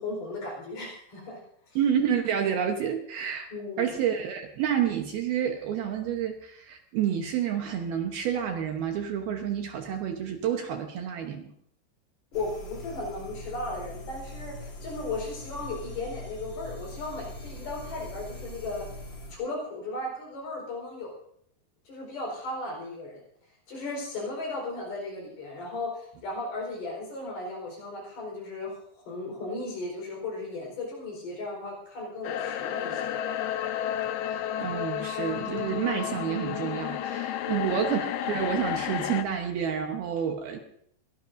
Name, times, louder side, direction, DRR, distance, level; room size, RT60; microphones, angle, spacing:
voice 1, 0.0-1.4 1.7-1.8 3.5-4.0 12.3-18.9 19.3-21.2 21.9-23.2 23.7-28.8 29.1-33.1 37.4-37.7, left 2 dB, 60° left, -1 dB, 6.3 m, -36 dB
voice 2, 1.8-3.5 3.8-11.5 34.2-40.6, right 8 dB, 70° right, 3 dB, 2.7 m, -29 dB
sound 1, 12.3-19.3, left 1 dB, 35° left, 2.2 m, -41 dB
sound 2, 32.2-39.2, left 10 dB, 75° left, 2.5 m, -31 dB
22.5 x 18.0 x 2.7 m, 0.68 s
omnidirectional pair, 5.2 m